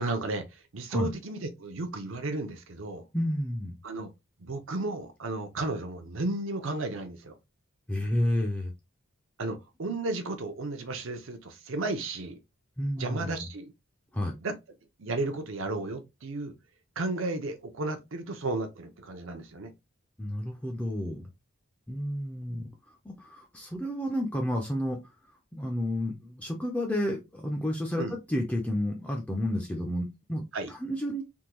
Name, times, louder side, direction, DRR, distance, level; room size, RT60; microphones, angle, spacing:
voice 1, 0.0-3.0 3.8-4.1 4.4-7.4 9.4-12.4 13.0-13.7 14.4-14.6 15.0-16.5 17.0-19.7 28.0-28.1 30.5-30.7, right 2 dB, 65° right, 0.6 m, -33 dB
voice 2, 3.1-3.7 7.9-8.7 12.8-13.3 14.1-14.4 20.2-21.3 21.9-22.7 23.0-25.0 25.5-31.2, left 1 dB, 5° left, 0.5 m, -31 dB
3.5 x 2.3 x 2.9 m
head